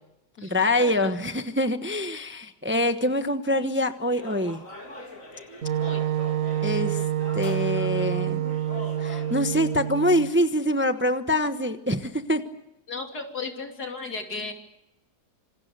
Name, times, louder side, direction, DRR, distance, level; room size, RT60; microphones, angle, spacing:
voice 1, 0.4-4.6 6.6-7.0 7.3-8.4 9.0-12.4, left 1 dB, 10° right, 8 dB, 0.9 m, -25 dB
sound 1, 4.1-9.4, left 2 dB, 55° left, 4.2 m, -42 dB
Wind instrument woodwind instrument, 5.6-10.3, right 11 dB, 55° right, 2.0 m, -27 dB
voice 2, 12.9-14.5, left 4 dB, 75° left, 3 dB, 3.6 m, -34 dB
27.0 x 26.0 x 6.8 m, 0.88 s
omnidirectional pair, 1.7 m